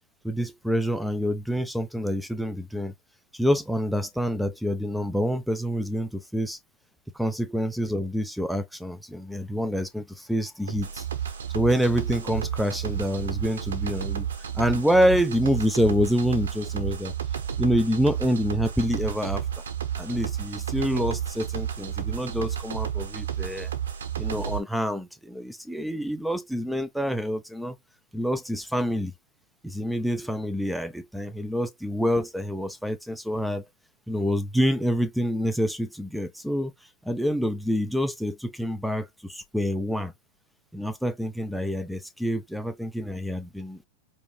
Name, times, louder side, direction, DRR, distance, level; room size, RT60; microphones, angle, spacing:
voice 1, 0.2-2.9 3.3-6.6 7.1-11.0 11.5-14.3 14.5-17.1 17.6-19.4 20.0-23.7 24.2-27.8 28.1-29.1 29.6-33.6 34.1-36.7 37.0-40.1 40.7-43.9, equal, ahead, 0.6 m, -27 dB
sound 1, 10.7-24.6, right 9 dB, 80° right, 0.9 m, -31 dB
5.1 x 2.2 x 3.1 m
hypercardioid pair, 110°, 0 cm